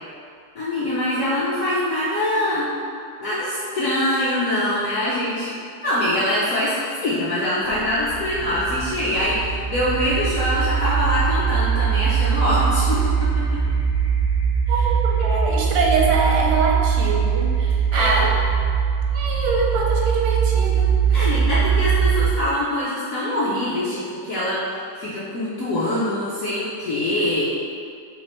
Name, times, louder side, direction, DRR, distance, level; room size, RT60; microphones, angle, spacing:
voice 1, 0.5-2.7 3.2-5.5 5.8-13.4 14.7-14.8 17.9-18.3 21.1-24.6 25.0-27.4, left 1 dB, 65° left, -9 dB, 0.8 m, -23 dB
sound 1, 7.7-22.5, right 7 dB, 85° left, 1.4 m, -21 dB
voice 2, 14.7-18.3 19.1-21.3, right 4 dB, 85° right, -1 dB, 1.4 m, -24 dB
4.3 x 2.5 x 4.2 m, 2.3 s
omnidirectional pair, 2.1 m